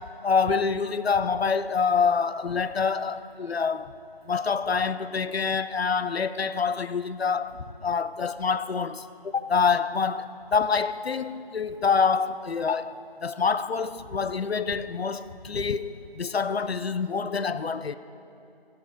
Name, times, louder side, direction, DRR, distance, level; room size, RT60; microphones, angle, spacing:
voice 1, 0.2-3.9 4.3-7.6 7.8-18.0, left 5 dB, 85° left, 0.6 m, -26 dB
14.5 x 10.5 x 4.7 m
figure-of-eight pair, 180°, 30 cm